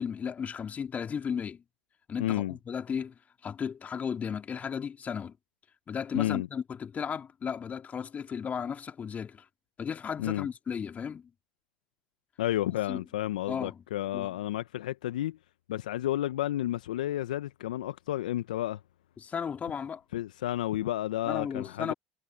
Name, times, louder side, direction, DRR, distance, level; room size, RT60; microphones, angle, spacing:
voice 1, 0.0-1.6 2.1-5.3 5.9-9.5 9.8-11.3 12.6-13.0 13.5-13.8 14.1-14.3 19.2-20.0 21.3-21.9, left 7 dB, 35° left, 3.2 m, -35 dB
voice 2, 2.2-2.5 6.1-6.5 10.2-10.5 12.4-15.4 15.7-18.8 20.1-21.9, left 14 dB, 80° left, 1.1 m, -31 dB
hypercardioid pair, 65°, 4 cm